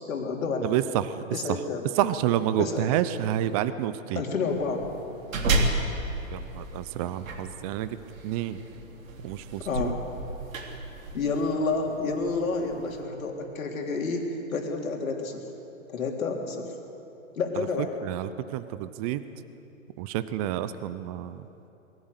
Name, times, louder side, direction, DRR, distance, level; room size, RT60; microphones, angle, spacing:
voice 1, 0.1-0.7 1.3-1.9 2.6-2.9 4.1-4.8 9.6-10.0 11.1-15.4 15.9-16.7 17.3-18.0, left 4 dB, 80° left, 1 dB, 3.5 m, -29 dB
voice 2, 0.6-1.0 2.0-4.2 6.3-7.9 8.2-8.6 9.2-9.9 17.6-17.7 18.0-19.2 20.0-21.4, right 12 dB, 25° right, 13 dB, 0.6 m, -29 dB
sound 1, 4.5-13.0, right 2 dB, 75° right, 3.4 m, -33 dB
21.0 x 16.0 x 8.1 m, 2.9 s
hypercardioid pair, 140°, 41 cm